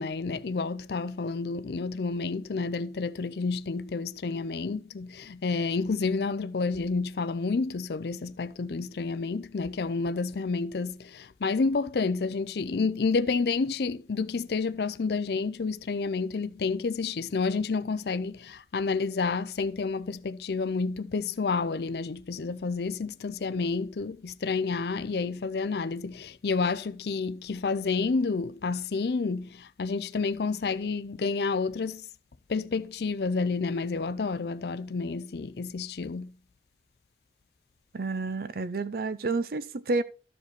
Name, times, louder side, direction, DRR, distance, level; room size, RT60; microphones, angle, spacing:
voice 1, 0.0-32.1 32.5-36.3, left 4 dB, 65° left, 0.5 m, -30 dB
voice 2, 37.9-40.0, right 3 dB, 55° right, 0.6 m, -30 dB
13.0 x 4.9 x 4.1 m
head